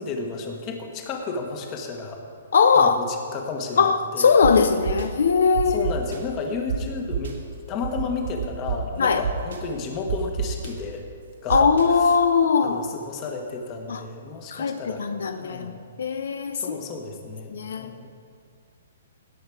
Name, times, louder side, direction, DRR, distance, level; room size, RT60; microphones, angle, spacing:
voice 1, 0.0-2.2 2.7-4.4 5.6-7.4 7.7-11.0 11.4-12.1 12.6-15.8 16.5-18.1, left 4 dB, 30° left, 3 dB, 1.4 m, -32 dB
voice 2, 2.5-3.0 3.8-5.9 9.0-9.2 11.5-12.9 13.9-14.0 14.5-15.7 16.0-16.6 17.5-17.9, left 5 dB, 75° left, 9 dB, 0.5 m, -20 dB
sound 1, 4.4-4.5 4.8-5.0 5.5-6.2 6.7-6.8 7.1-7.3 7.8-8.8 9.2-9.6 10.1-10.7 11.5-11.8, right 8 dB, 80° right, 1.8 m, -27 dB
18.0 x 6.5 x 4.9 m, 2.3 s
hypercardioid pair, 150°, 0 cm